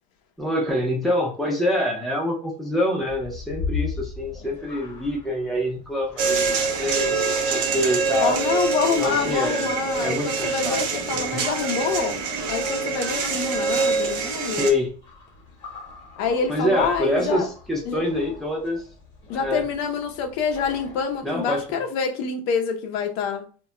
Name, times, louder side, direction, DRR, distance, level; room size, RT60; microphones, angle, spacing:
voice 1, 0.4-6.5 6.8-8.4 9.0-9.7 10.0-10.8 11.1-11.4 14.6-14.9 16.5-18.8 19.4-19.6 21.2-21.6, left 1 dB, ahead, 0.5 m, -25 dB
sound 1, 3.0-21.8, left 5 dB, 25° left, 0.9 m, -40 dB
sound 2, 6.2-14.7, right 4 dB, 55° right, 0.6 m, -25 dB
voice 2, 8.2-12.2 12.5-14.7 16.2-17.5 17.9-18.0 19.3-23.4, left 6 dB, 55° left, 0.5 m, -26 dB
2.2 x 2.0 x 3.6 m
cardioid pair, 175°, 17 cm